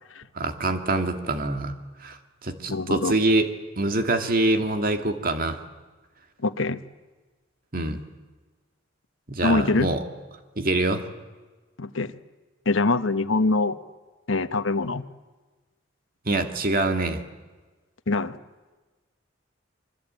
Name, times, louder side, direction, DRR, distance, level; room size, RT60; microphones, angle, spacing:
voice 1, 0.4-1.7 2.0-3.5 3.8-5.6 7.7-8.0 9.3-10.0 10.6-11.1 16.3-17.2, right 2 dB, 50° right, 6 dB, 2.3 m, -25 dB
voice 2, 2.7-3.1 6.4-6.8 9.4-9.9 11.8-12.1 12.7-13.8 14.3-15.0 18.1-18.4, left 3 dB, 85° left, 11 dB, 1.1 m, -23 dB
26.0 x 23.5 x 8.9 m, 1.3 s
head